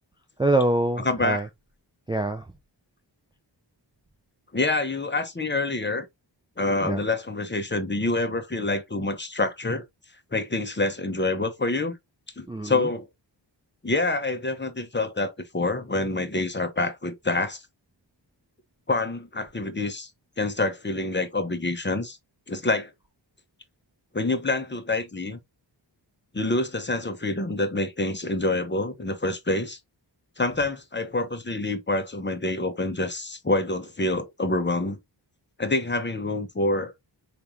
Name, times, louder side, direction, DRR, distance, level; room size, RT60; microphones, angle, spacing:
voice 1, 0.4-1.5 2.1-2.5 6.8-7.0 12.5-12.9, right 2 dB, 10° right, 0.5 m, -24 dB
voice 2, 1.0-1.5 4.5-6.1 6.6-9.8 10.3-11.9 12.4-13.1 13.8-17.6 18.9-20.1 20.4-22.2 22.5-22.9 24.1-25.4 26.3-29.8 30.4-35.0 35.6-36.9, left 2 dB, 25° left, 1.0 m, -27 dB
4.9 x 3.4 x 2.8 m
wide cardioid pair, 110°, 44 cm